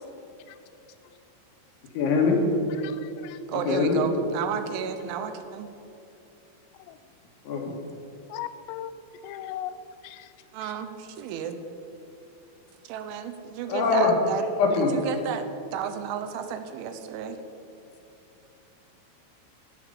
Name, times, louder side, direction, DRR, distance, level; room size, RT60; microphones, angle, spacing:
voice 1, 2.0-2.4 3.5-4.0 7.5-7.8 13.7-14.2 14.6-15.0, left 4 dB, 70° left, 1 dB, 3.9 m, -23 dB
voice 2, 2.8-3.4 6.9-7.0 8.3-8.9 9.2-9.7 10.0-10.3 10.6-10.7, left 12 dB, 85° left, 12 dB, 3.3 m, -38 dB
voice 3, 3.5-5.7 10.5-11.6 12.8-14.4 14.7-17.4, right 7 dB, 80° right, 9 dB, 3.2 m, -32 dB
14.5 x 9.2 x 7.0 m, 2.9 s
omnidirectional pair, 5.7 m